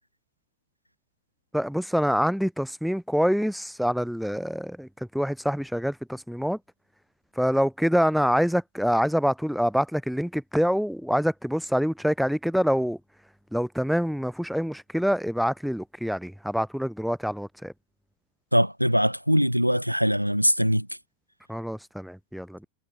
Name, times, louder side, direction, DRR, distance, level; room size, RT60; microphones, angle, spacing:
voice 1, 1.5-6.6 7.4-13.0 13.5-17.7 21.5-22.7, equal, ahead, 4.3 m, -26 dB
voice 2, 18.5-20.9, equal, 90° right, 5.0 m, -22 dB
figure-of-eight pair, 90°, 0 cm